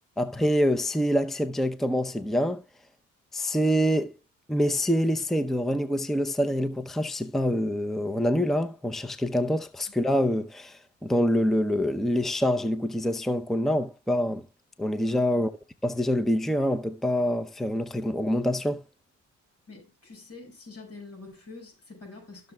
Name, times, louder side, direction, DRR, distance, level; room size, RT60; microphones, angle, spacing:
voice 1, 0.2-2.6 3.3-4.1 4.5-14.4 14.8-15.5 15.8-18.8, equal, ahead, 0.7 m, -26 dB
voice 2, 19.7-22.5, left 3 dB, 50° left, 6.4 m, -46 dB
15.5 x 6.7 x 2.3 m
cardioid pair, 90°, 30 cm